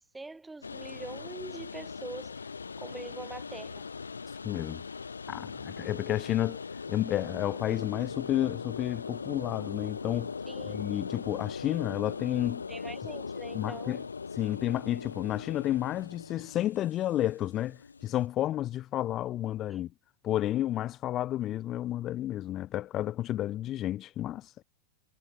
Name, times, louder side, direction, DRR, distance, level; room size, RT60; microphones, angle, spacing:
voice 1, 0.0-2.5 2.8-3.8 10.5-10.9 12.7-14.1 19.7-19.9, right 3 dB, 10° right, 4.5 m, -44 dB
sound 1, 0.6-18.3, left 5 dB, 75° left, 2.2 m, -40 dB
voice 2, 4.4-4.8 5.3-6.6 6.9-10.3 10.6-12.6 13.5-14.0 14.4-19.9 20.2-24.6, left 13 dB, 30° left, 2.3 m, -31 dB
figure-of-eight pair, 90°, 0 cm